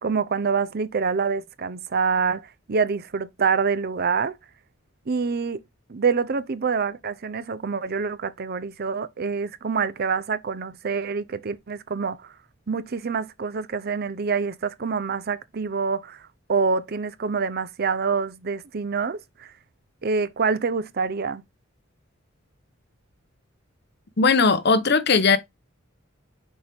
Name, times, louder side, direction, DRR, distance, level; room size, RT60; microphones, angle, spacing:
voice 1, 0.0-4.4 5.1-5.6 5.9-12.3 12.7-19.5 20.0-21.4, right 5 dB, 50° right, 0.6 m, -26 dB
voice 2, 24.2-25.4, left 4 dB, 55° left, 0.9 m, -18 dB
6.3 x 4.5 x 3.5 m
head